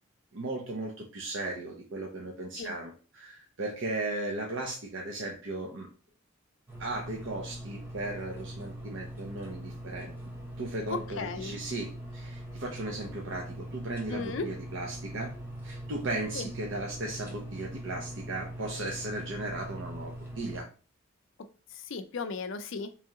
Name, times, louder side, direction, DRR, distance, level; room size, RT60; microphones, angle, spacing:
voice 1, 0.3-5.9 6.8-10.1 10.6-20.7, right 2 dB, 65° right, 0 dB, 0.6 m, -36 dB
sound 1, 6.7-20.6, right 1 dB, 10° right, 0.9 m, -42 dB
voice 2, 10.9-11.6 14.1-14.5 16.3-16.5 21.4-22.9, left 4 dB, 65° left, 9 dB, 0.4 m, -36 dB
3.1 x 2.8 x 3.6 m, 0.36 s
head